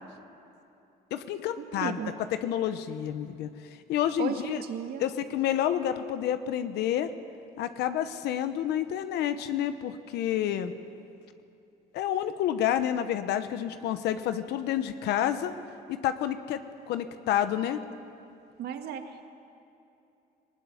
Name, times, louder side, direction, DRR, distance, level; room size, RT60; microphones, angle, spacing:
voice 1, 1.1-2.0 2.4-4.6 5.0-7.1 7.6-10.7 11.9-15.5 15.9-16.6 16.9-17.8, left 10 dB, 80° left, 10 dB, 1.0 m, -29 dB
voice 2, 1.8-2.1 4.2-5.0 18.6-19.2, right 8 dB, 70° right, 6 dB, 1.9 m, -35 dB
20.0 x 19.0 x 9.7 m, 2.8 s
cardioid pair, 110°, 17 cm